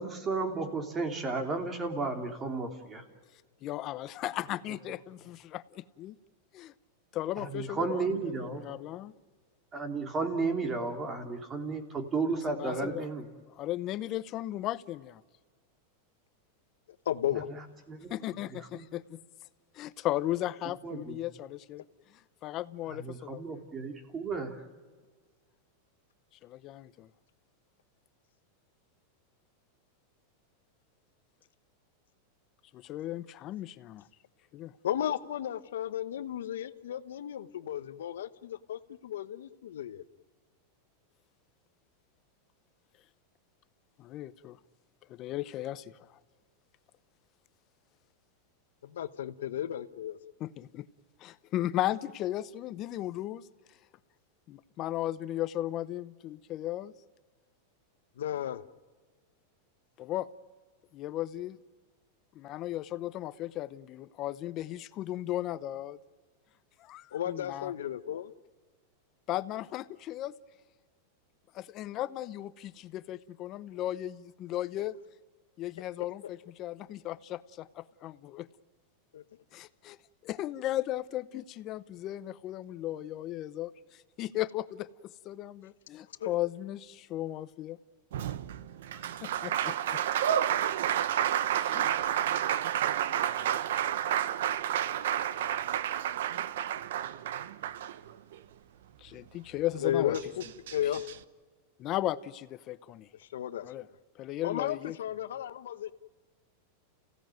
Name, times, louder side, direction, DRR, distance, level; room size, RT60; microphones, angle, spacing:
voice 1, 0.0-3.0 7.4-8.8 9.7-13.3 17.9-18.2 18.7-18.8 20.8-21.2 22.9-24.6, right 3 dB, 20° right, 3.2 m, -33 dB
voice 2, 3.6-6.1 6.5-6.7 7.1-9.1 12.6-13.1 13.5-15.2 18.1-19.2 19.7-21.8 22.1-23.6 26.4-27.1 32.7-34.1 34.5-34.7 44.0-44.6 45.1-46.2 50.4-50.9 51.2-53.5 54.5-56.9 60.0-60.3 60.9-61.6 62.3-66.0 66.8-67.7 69.3-70.3 71.5-74.9 75.6-78.5 79.5-80.0 80.2-84.9 85.2-87.8 88.9-90.0 91.5-91.9 99.0-100.2 101.8-103.1 103.6-103.9 104.2-105.0, left 14 dB, 35° left, 0.8 m, -36 dB
voice 3, 17.1-17.4 34.8-40.0 48.8-50.2 58.2-58.6 67.1-68.3 79.1-79.2 86.2-86.4 99.8-100.4 100.7-101.2 103.2-103.7 104.4-105.9, left 11 dB, 85° left, 1.0 m, -34 dB
Applause, 88.1-98.4 99.8-99.9 100.1-101.2, right 11 dB, 80° right, 0.9 m, -30 dB
29.5 x 16.5 x 9.3 m
supercardioid pair, 140°, 0 cm